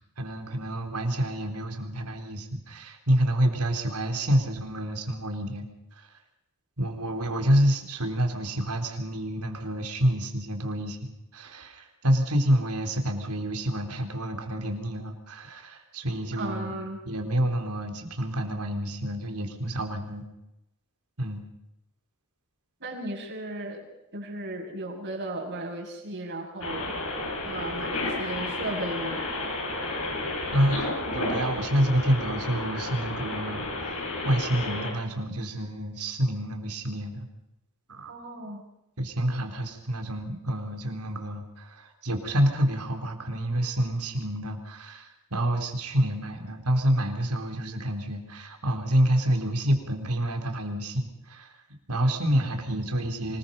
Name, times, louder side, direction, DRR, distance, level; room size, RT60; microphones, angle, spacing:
voice 1, 0.0-5.7 5.9-6.1 6.8-16.7 17.1-20.3 21.2-21.4 30.5-30.8 31.1-37.3 37.9-38.1 39.0-51.5 51.9-53.4, equal, 85° right, 4 dB, 3.9 m, -28 dB
voice 2, 16.3-17.0 22.8-23.8 24.1-26.9 27.4-29.2 38.1-38.6, right 1 dB, 50° right, -1 dB, 6.8 m, -35 dB
sound 1, 26.6-34.9, left 2 dB, 65° left, 6.8 m, -32 dB
25.0 x 21.0 x 5.5 m, 0.86 s
head